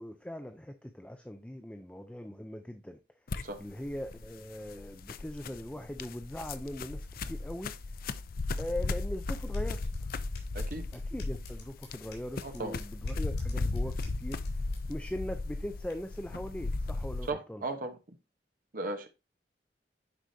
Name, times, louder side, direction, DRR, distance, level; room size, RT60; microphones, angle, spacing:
voice 1, 0.0-3.0 3.6-7.7 8.6-9.8 10.9-14.4 14.9-17.6, left 1 dB, 5° left, 0.5 m, -40 dB
sound 1, 3.3-17.3, left 3 dB, 55° left, 0.5 m, -36 dB
sound 2, 8.7-15.9, left 4 dB, 85° left, 3.9 m, -57 dB
voice 2, 10.5-10.9 12.4-12.8 17.3-18.2 18.7-19.1, right 2 dB, 55° right, 1.1 m, -36 dB
10.0 x 4.9 x 2.8 m
head